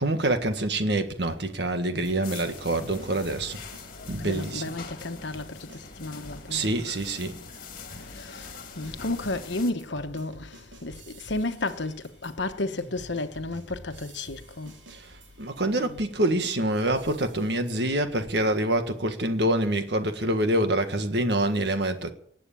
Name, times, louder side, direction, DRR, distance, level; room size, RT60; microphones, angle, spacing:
voice 1, 0.0-3.6 4.1-4.7 6.5-7.3 14.9-15.1 15.4-22.1, right 1 dB, 65° right, 1.7 m, -26 dB
sound 1, 2.0-7.6 7.9-17.6, right 1 dB, 80° right, 3.1 m, -50 dB
sound 2, 2.2-9.7, left 4 dB, 45° left, 2.1 m, -43 dB
voice 2, 4.2-6.7 8.1-8.5 8.8-14.7, left 2 dB, 75° left, 1.2 m, -32 dB
19.0 x 8.2 x 8.5 m
head